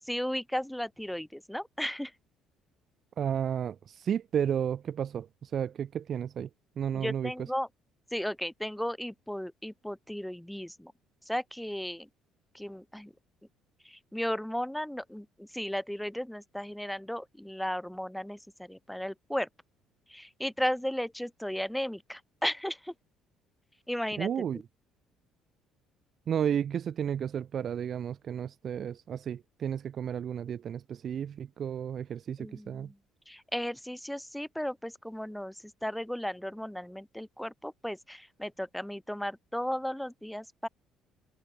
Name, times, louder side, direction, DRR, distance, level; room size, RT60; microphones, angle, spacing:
voice 1, 0.1-2.1 6.9-7.7 8.1-10.9 11.3-12.1 12.5-13.1 13.9-19.5 20.1-22.9 23.9-24.3 32.4-32.9 33.3-35.5 35.8-40.7, equal, 5° left, 2.5 m, -35 dB
voice 2, 3.2-3.8 4.0-6.5 6.8-7.3 24.2-24.6 26.3-32.4 32.7-32.9, right 8 dB, 50° right, 0.9 m, -32 dB
cardioid pair, 95°, 0 cm